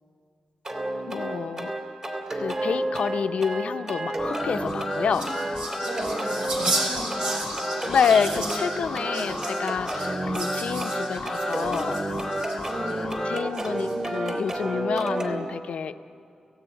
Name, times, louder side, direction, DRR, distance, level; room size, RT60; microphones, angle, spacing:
sound 1, 0.6-15.4, right 1 dB, 40° right, 3.2 m, -30 dB
voice 1, 1.1-1.7 2.3-5.3 7.9-12.0 13.2-15.9, left 6 dB, 85° left, 9 dB, 0.8 m, -28 dB
sound 2, 4.2-13.5, left 3 dB, 35° left, 0.5 m, -36 dB
sound 3, 4.5-12.9 13.5-14.2, right 2 dB, 65° right, 6.2 m, -34 dB
voice 2, 5.9-8.0 9.1-9.5 12.6-13.3, right 1 dB, 80° right, -2 dB, 7.9 m, -37 dB
29.0 x 16.0 x 9.2 m, 2.5 s
wide cardioid pair, 100°, 2 cm